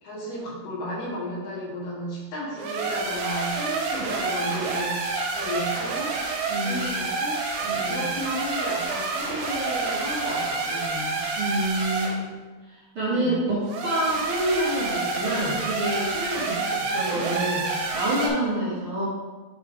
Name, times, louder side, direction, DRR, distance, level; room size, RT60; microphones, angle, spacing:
voice 1, 0.0-5.0 5.3-6.2 6.6-7.4 7.9-11.2 13.1-13.4 16.4-16.5, equal, 75° left, -4 dB, 3.5 m, -33 dB
sound 1, 2.5-12.2 13.6-18.3, right 3 dB, 80° right, 2.8 m, -28 dB
voice 2, 6.5-6.8 7.6-8.0 11.4-12.2 12.7-19.1, right 1 dB, 45° right, -10 dB, 2.2 m, -27 dB
8.6 x 4.7 x 3.6 m, 1.3 s
omnidirectional pair, 4.6 m